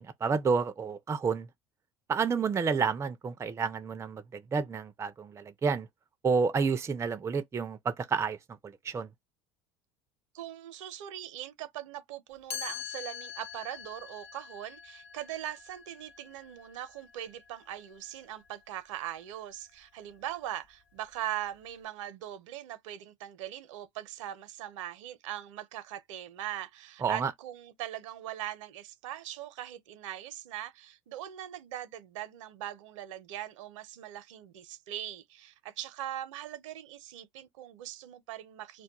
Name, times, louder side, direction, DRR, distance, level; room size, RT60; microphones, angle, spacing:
voice 1, 0.0-1.5 2.1-5.9 6.2-8.4 8.6-9.1 27.0-27.3, right 5 dB, 20° right, 0.4 m, -30 dB
voice 2, 10.3-38.8, right 12 dB, 80° right, 0.6 m, -41 dB
Chime, 12.5-18.4, left 8 dB, 60° left, 0.9 m, -44 dB
2.2 x 2.1 x 2.8 m
hypercardioid pair, 80°, 16 cm